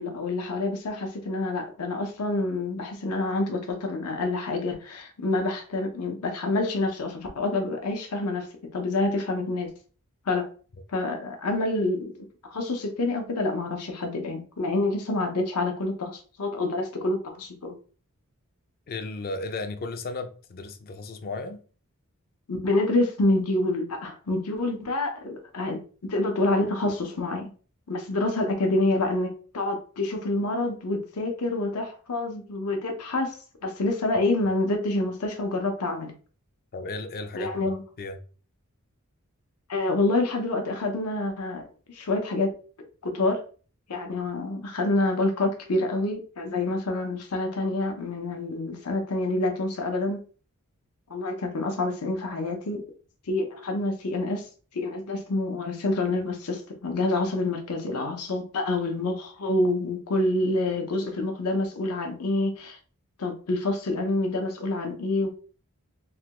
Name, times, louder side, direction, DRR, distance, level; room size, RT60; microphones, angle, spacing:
voice 1, 0.0-8.5 8.7-9.7 10.3-10.5 10.9-12.1 12.4-17.7 22.5-25.8 26.1-27.5 27.9-36.1 37.3-37.8 39.7-42.5 43.0-43.4 43.9-50.2 51.1-52.8 53.3-54.4 54.7-62.8 63.2-65.3, left 2 dB, 85° left, 0.7 m, -27 dB
voice 2, 18.9-21.6 36.7-37.7 38.0-38.2, left 3 dB, 45° left, 0.4 m, -35 dB
3.2 x 2.2 x 2.9 m
head